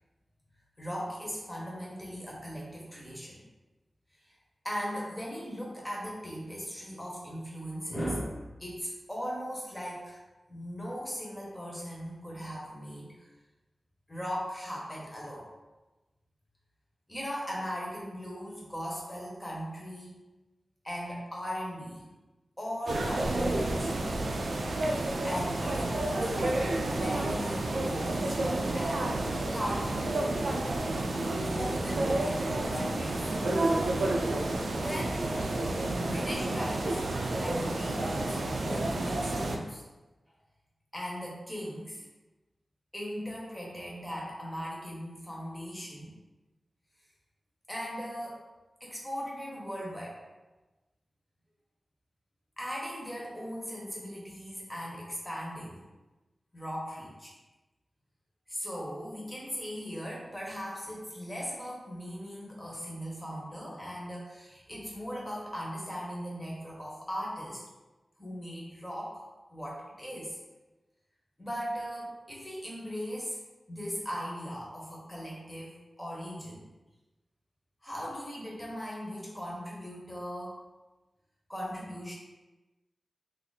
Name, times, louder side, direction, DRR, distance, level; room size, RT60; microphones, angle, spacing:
voice 1, 0.8-3.5 4.2-4.4 4.6-10.2 10.5-13.2 14.1-15.5 17.1-20.2 20.8-22.1 22.6-24.1 25.0-29.2 29.5-30.0 31.4-33.2 34.8-35.3 35.9-37.0 37.3-39.8 40.9-42.1 42.9-46.1 47.7-48.4 48.8-50.2 52.6-55.8 56.5-57.3 58.5-67.6 68.2-69.2 69.5-70.4 71.4-73.4 73.7-76.7 77.8-80.6 81.5-82.1, equal, 15° left, -4 dB, 1.0 m, -38 dB
sound 1, 22.9-39.6, right 2 dB, 80° right, 0.4 m, -30 dB
2.7 x 2.5 x 4.0 m, 1.1 s
wide cardioid pair, 100°, 0 cm